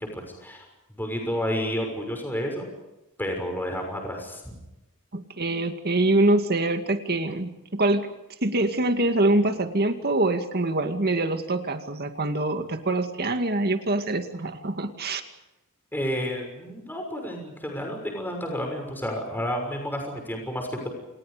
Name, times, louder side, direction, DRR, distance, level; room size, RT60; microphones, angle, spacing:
voice 1, 0.0-2.7 3.2-4.6 15.9-20.9, equal, 10° left, 2 dB, 6.3 m, -31 dB
voice 2, 5.1-8.1 8.4-15.2, right 2 dB, 45° right, 7 dB, 2.2 m, -24 dB
30.0 x 28.0 x 5.1 m, 0.98 s
head